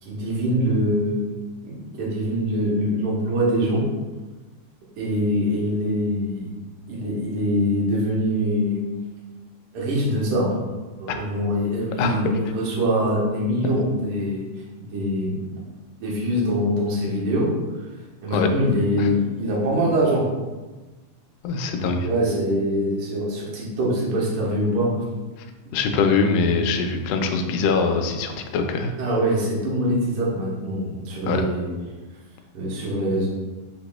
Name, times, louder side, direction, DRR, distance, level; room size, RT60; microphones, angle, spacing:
voice 1, 0.0-1.3 1.6-3.8 5.0-6.4 6.9-8.8 9.7-10.5 11.0-14.4 14.8-15.4 16.0-17.5 18.2-20.2 22.0-25.0 29.0-31.7 32.5-33.3, equal, 60° right, -5 dB, 1.5 m, -23 dB
voice 2, 12.0-12.3 18.3-18.5 19.0-19.1 21.4-22.1 25.7-28.9 31.3-31.4, left 4 dB, 85° left, 5 dB, 2.1 m, -23 dB
7.0 x 3.0 x 2.2 m, 1.2 s
omnidirectional pair, 3.6 m